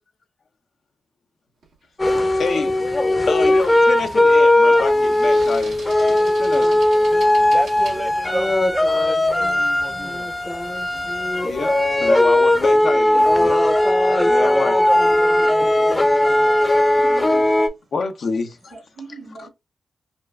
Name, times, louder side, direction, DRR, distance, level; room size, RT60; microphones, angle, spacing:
sound 1, 1.6-1.9 3.3-8.0, right 3 dB, 85° right, 1.3 m, -42 dB
sound 2, 2.0-17.7, left 1 dB, 25° left, 0.7 m, -18 dB
voice 1, 2.4-7.3 11.4-13.7 14.2-14.8 17.9-18.8 19.4-19.5, left 4 dB, 70° left, 0.7 m, -28 dB
voice 2, 7.5-10.3 14.1-16.6, right 2 dB, 30° right, 0.4 m, -32 dB
voice 3, 13.1-13.5 15.4-16.5 16.9-17.7 18.7-19.5, right 4 dB, 65° right, 1.5 m, -42 dB
4.3 x 2.2 x 2.4 m
supercardioid pair, 40°, 0 cm